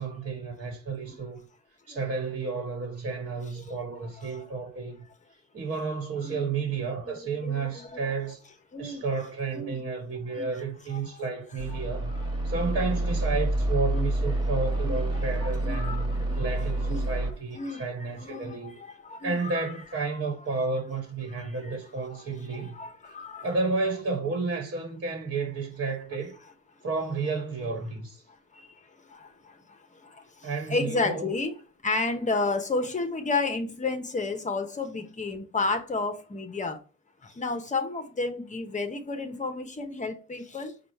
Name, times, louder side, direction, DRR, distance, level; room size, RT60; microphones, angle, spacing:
voice 1, 0.0-1.4 1.9-5.0 5.5-8.4 8.8-12.1 12.4-18.7 19.2-22.8 23.0-23.1 23.4-26.3 26.8-28.2 30.4-31.3, right 4 dB, 40° right, 1.4 m, -31 dB
voice 2, 4.2-4.5 6.2-6.5 7.0-8.1 8.7-9.0 9.5-9.8 10.3-10.5 10.9-11.2 11.7-11.8 12.4-12.9 13.9-14.1 14.8-15.0 15.4-16.5 16.9-17.1 17.5-17.8 18.2-19.6 21.3-21.8 22.1-22.2 22.6-23.5 28.3-28.7 29.0-31.6 31.8-36.8 37.2-40.8, left 3 dB, 25° left, 0.9 m, -32 dB
sound 1, 11.6-17.3, right 1 dB, 15° right, 1.0 m, -28 dB
4.9 x 2.4 x 4.3 m
cardioid pair, 90°, 30 cm